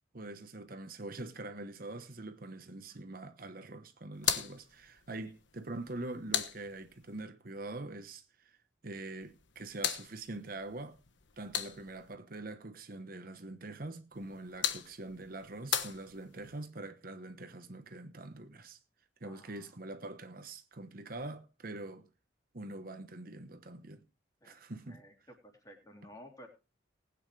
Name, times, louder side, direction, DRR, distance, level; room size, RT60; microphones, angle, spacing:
voice 1, 0.1-8.6 8.8-11.0 11.4-18.8 19.2-22.1 22.5-24.0 24.4-25.0, right 2 dB, 50° right, 1.1 m, -44 dB
sound 1, 4.1-7.2 9.2-12.2 14.1-16.6, left 9 dB, 70° left, 1.3 m, -39 dB
voice 2, 19.2-19.7 24.4-24.5 24.9-25.1 25.4-26.5, equal, 20° left, 3.3 m, -53 dB
19.5 x 9.0 x 3.3 m
head